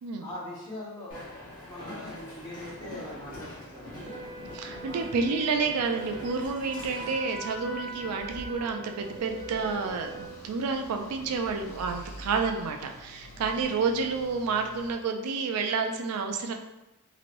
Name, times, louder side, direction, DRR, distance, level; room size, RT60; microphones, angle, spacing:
voice 1, 0.2-1.3 1.6-4.1 4.7-5.0, left 1 dB, 20° left, -8 dB, 1.1 m, -42 dB
Train, 1.1-13.6, left 1 dB, 40° left, 1.2 m, -45 dB
Wind instrument woodwind instrument, 4.0-10.4, right 3 dB, 25° right, 0.5 m, -42 dB
voice 2, 4.5-16.5, right 4 dB, 85° right, 5 dB, 0.4 m, -30 dB
sound 1, 8.9-15.0, equal, 80° left, 1.2 m, -48 dB
2.9 x 2.9 x 2.5 m, 1.0 s
head